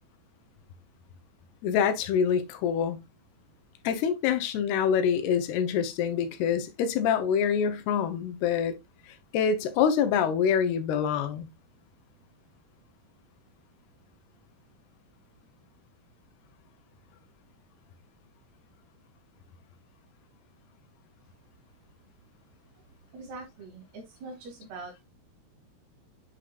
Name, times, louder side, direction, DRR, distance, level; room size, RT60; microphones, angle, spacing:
voice 1, 1.6-3.0 3.8-8.7 9.3-11.5, left 7 dB, 85° left, 2.9 m, -26 dB
voice 2, 23.1-25.0, right 3 dB, 80° right, 4.7 m, -43 dB
9.2 x 5.0 x 2.4 m
omnidirectional pair, 4.5 m